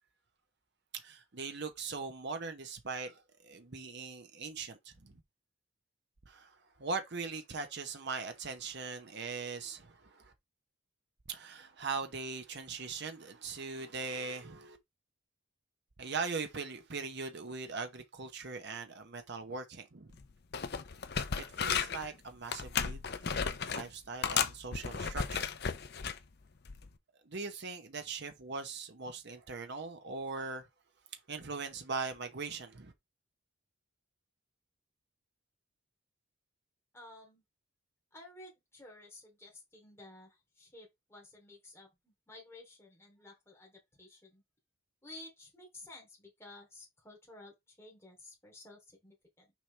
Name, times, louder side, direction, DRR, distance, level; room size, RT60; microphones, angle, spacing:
voice 1, 0.9-5.2 6.3-10.3 11.3-14.8 16.0-20.2 21.3-25.4 27.2-30.7 31.3-32.9, right 4 dB, 50° right, 1.0 m, -40 dB
sound 1, 20.1-20.3 20.5-22.1 22.5-23.9 24.2-26.2 26.7-26.9, left 6 dB, 50° left, 0.6 m, -34 dB
voice 2, 36.9-37.4 38.1-44.4 45.0-49.5, left 2 dB, 10° left, 2.9 m, -54 dB
6.2 x 4.8 x 3.3 m
head